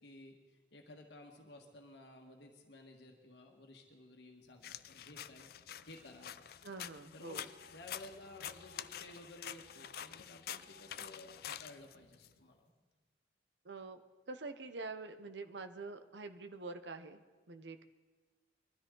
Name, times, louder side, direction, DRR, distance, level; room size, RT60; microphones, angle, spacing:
voice 1, 0.0-6.4 7.1-7.4 7.7-12.7, left 2 dB, 75° left, 2 dB, 1.6 m, -55 dB
sound 1, 4.6-12.3, left 10 dB, 55° left, 0.4 m, -47 dB
Telephone, 4.6-4.8 5.0-5.2 6.1-6.2 6.5-6.6 7.4-7.7 8.4-8.8 9.5-9.9 10.5-10.8 11.6-11.7 12.0-12.7, equal, 30° right, 5.0 m, -65 dB
voice 2, 6.6-7.5 13.6-14.0 14.3-17.2 17.5-17.8, right 3 dB, 80° right, 8 dB, 0.9 m, -46 dB
22.0 x 13.0 x 3.9 m, 1.3 s
head